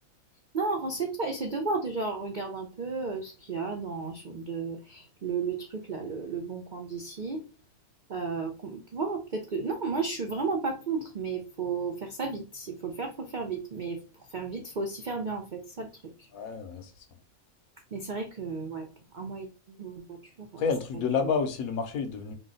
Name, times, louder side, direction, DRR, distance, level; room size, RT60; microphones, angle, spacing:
voice 1, 0.5-7.4 8.1-14.0 14.3-16.3 17.9-18.9 19.1-20.6 21.2-21.3, right 4 dB, 80° right, 0.4 m, -33 dB
voice 2, 16.3-16.9 20.6-22.3, left 5 dB, 70° left, 1.1 m, -29 dB
4.9 x 2.2 x 3.8 m
omnidirectional pair, 1.7 m